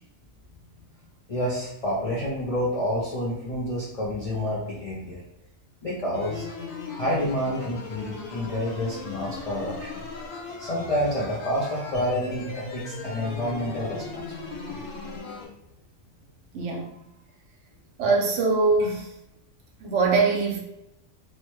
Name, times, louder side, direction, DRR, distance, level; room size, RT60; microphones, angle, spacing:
voice 1, 1.3-5.2 5.8-6.4 6.9-10.0 10.6-14.3, left 1 dB, 50° left, -7 dB, 0.4 m, -28 dB
sound 1, 6.1-15.5, left 3 dB, 85° left, 1.1 m, -38 dB
voice 2, 16.5-16.9 18.0-19.1 19.8-20.6, right 4 dB, 70° right, 1 dB, 0.9 m, -22 dB
2.8 x 2.1 x 3.0 m, 0.83 s
omnidirectional pair, 1.3 m